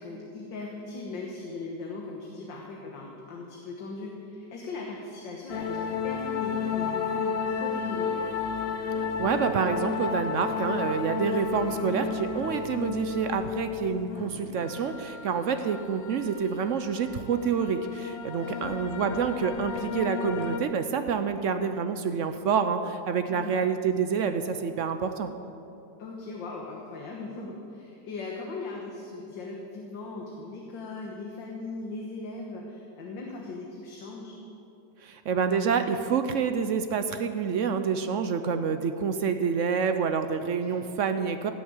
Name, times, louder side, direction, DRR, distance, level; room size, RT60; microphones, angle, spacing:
voice 1, 0.0-8.3 14.1-14.6 18.4-18.8 23.3-23.6 26.0-34.3 40.4-40.8, left 3 dB, 85° left, -1 dB, 2.1 m, -39 dB
sound 1, 5.5-20.6, left 6 dB, 65° left, 0.6 m, -32 dB
voice 2, 9.0-25.3 35.0-41.5, right 6 dB, 70° right, 9 dB, 0.7 m, -28 dB
16.5 x 6.4 x 8.8 m, 2.7 s
omnidirectional pair, 1.9 m